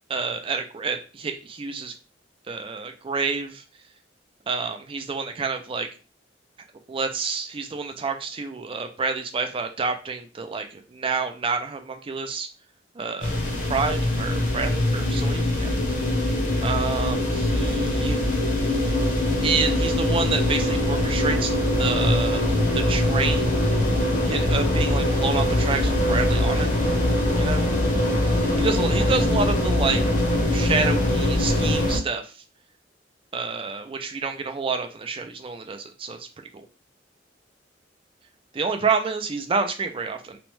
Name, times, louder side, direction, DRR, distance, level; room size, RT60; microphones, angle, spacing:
voice 1, 0.1-1.9 2.5-3.6 4.5-5.9 6.9-12.5 13.0-13.4 13.7-15.7 16.6-18.2 19.4-21.5 21.8-23.6 24.3-26.7 27.4-27.7 28.6-30.0 30.5-32.3 33.3-36.3 36.5-36.7 38.5-40.4, right 4 dB, 30° right, 6 dB, 0.4 m, -28 dB
sound 1, 13.2-32.0, left 1 dB, 45° left, 0.8 m, -22 dB
2.9 x 2.2 x 3.0 m, 0.34 s
head